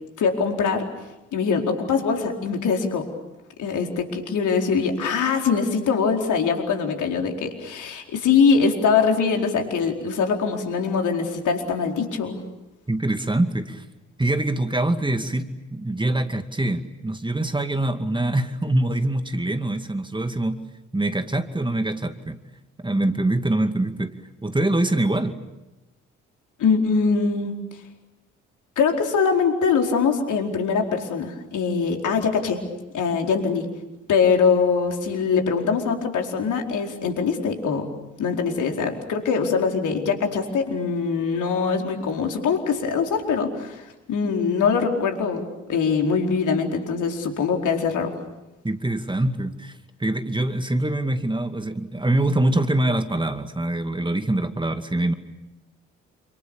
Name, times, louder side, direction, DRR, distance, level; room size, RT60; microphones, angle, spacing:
voice 1, 0.2-0.9 1.3-3.1 3.6-12.4 26.6-27.5 28.8-32.6 32.9-33.7 34.1-37.9 38.2-48.1, left 5 dB, 60° left, 3 dB, 4.6 m, -23 dB
voice 2, 12.9-13.8 14.2-20.6 20.9-22.4 22.8-25.4 48.6-55.1, right 1 dB, 15° right, 8 dB, 2.2 m, -24 dB
29.0 x 27.5 x 7.1 m, 1.0 s
figure-of-eight pair, 40°, 34 cm